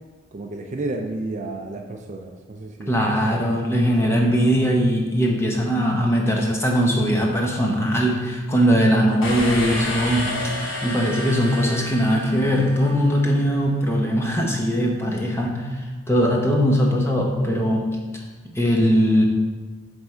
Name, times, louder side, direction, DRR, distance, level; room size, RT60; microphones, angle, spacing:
voice 1, 0.3-3.8 4.0-4.4, right 2 dB, 35° right, 3 dB, 0.4 m, -32 dB
voice 2, 2.9-10.3 10.8-17.8 18.5-19.2, equal, 10° left, -1 dB, 0.7 m, -20 dB
sound 1, 9.2-13.0, left 1 dB, 75° left, 1.2 m, -30 dB
7.8 x 3.4 x 4.4 m, 1.3 s
head